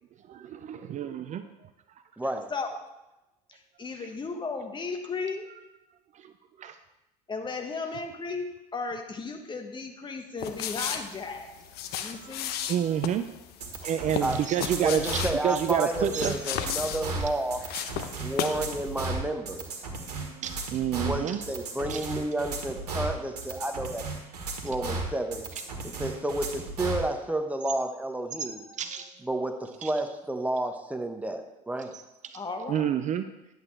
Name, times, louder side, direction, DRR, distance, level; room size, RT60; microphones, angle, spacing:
voice 1, 0.3-1.4 4.0-4.1 6.2-6.3 6.6-6.8 12.6-13.2 13.8-16.3 20.2-21.4 21.9-22.0 28.7-29.1 29.8-29.9 32.2-32.4 32.7-33.2, right 10 dB, 35° right, 10 dB, 0.5 m, -29 dB
voice 2, 2.2-2.5 14.2-14.4 14.8-17.6 18.2-19.7 21.0-24.1 24.6-25.4 26.0-28.6 29.2-31.9, right 1 dB, 5° right, 5 dB, 1.1 m, -31 dB
voice 3, 3.8-5.5 7.3-11.5 12.0-12.5 32.3-32.9, left 4 dB, 25° left, 5 dB, 1.4 m, -35 dB
sound 1, 10.4-18.7 19.0-19.1, left 9 dB, 55° left, 0.8 m, -35 dB
sound 2, 13.6-27.1, right 3 dB, 80° right, 1.6 m, -35 dB
10.5 x 8.0 x 3.3 m, 0.95 s
hypercardioid pair, 70°, 20 cm